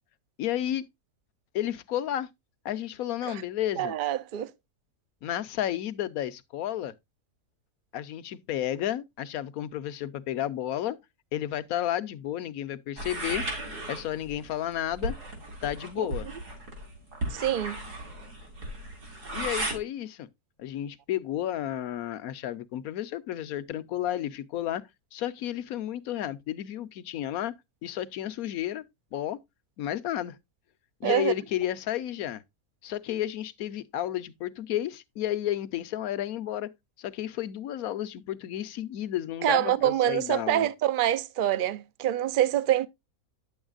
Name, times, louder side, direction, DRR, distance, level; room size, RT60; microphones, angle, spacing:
voice 1, 0.4-0.8 1.5-2.3 2.6-4.0 5.2-6.9 7.9-11.0 11.3-13.4 13.9-15.1 15.6-16.3 19.3-20.3 20.6-24.8 25.1-27.5 27.8-28.8 29.1-29.4 29.8-30.4 31.0-32.4 32.8-36.7 37.0-40.7, left 12 dB, 70° left, 1.1 m, -32 dB
voice 2, 3.8-4.5 17.3-17.8 31.0-31.3 39.4-42.9, right 12 dB, 55° right, 0.5 m, -25 dB
sound 1, 13.0-19.8, right 1 dB, 90° right, 4.0 m, -36 dB
9.5 x 7.9 x 2.4 m
omnidirectional pair, 1.6 m